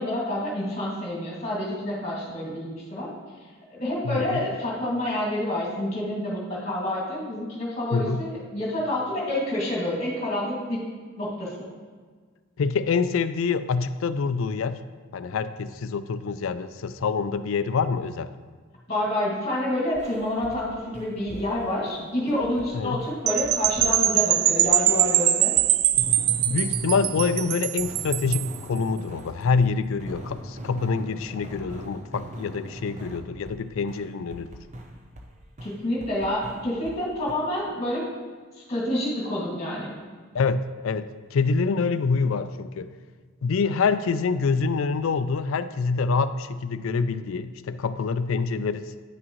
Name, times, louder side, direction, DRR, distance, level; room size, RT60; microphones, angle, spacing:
voice 1, 0.0-3.1 3.7-10.8 11.2-11.7 18.9-25.5 35.6-38.1 38.6-39.9, left 1 dB, 30° left, -5 dB, 2.1 m, -28 dB
voice 2, 4.0-4.4 7.9-8.2 12.6-14.8 15.1-18.3 22.7-23.0 26.4-34.5 40.3-42.9 43.4-48.9, left 4 dB, 70° left, 13 dB, 0.4 m, -26 dB
sound 1, 19.9-20.6 20.9-22.7 23.0-29.7 30.0-33.6 33.9-35.3 35.6-37.0 37.3-37.4, right 1 dB, 35° right, 0.7 m, -39 dB
sound 2, 23.3-28.6, right 12 dB, 85° right, 0.4 m, -22 dB
9.9 x 6.1 x 3.1 m, 1.5 s
head